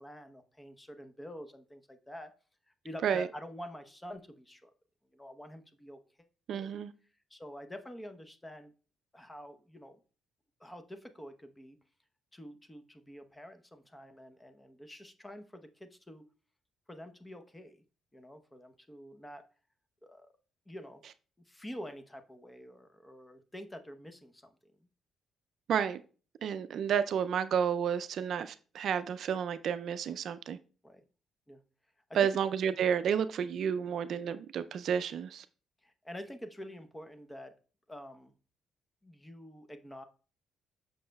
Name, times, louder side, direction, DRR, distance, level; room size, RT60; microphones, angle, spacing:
voice 1, 0.0-2.3 2.8-4.7 5.1-6.0 6.5-6.7 7.3-8.7 9.1-10.0 10.6-11.8 12.3-16.2 16.9-17.8 18.1-19.4 20.0-20.3 20.7-21.0 21.5-24.7 30.8-31.0 31.5-31.6 32.1-32.2 35.8-37.5 37.9-38.3 39.0-40.0, equal, 15° left, 0.8 m, -47 dB
voice 2, 6.5-6.9 25.7-26.0 26.4-30.6 32.1-35.5, right 8 dB, 65° right, 0.4 m, -31 dB
7.4 x 6.3 x 2.3 m
cardioid pair, 90°, 0 cm